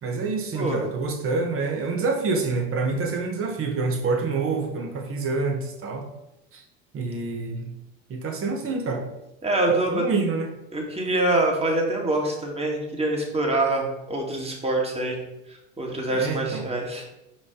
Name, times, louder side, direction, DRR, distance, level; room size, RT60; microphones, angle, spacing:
voice 1, 0.0-6.1 6.5-6.6 6.9-7.7 8.1-9.1 9.7-10.5 16.1-16.6, right 4 dB, 40° right, 2 dB, 1.8 m, -27 dB
voice 2, 9.4-10.0 10.7-15.2 15.5-17.0, right 2 dB, 15° right, 0 dB, 2.1 m, -25 dB
5.5 x 5.1 x 5.1 m, 0.89 s
hypercardioid pair, 80°, 34 cm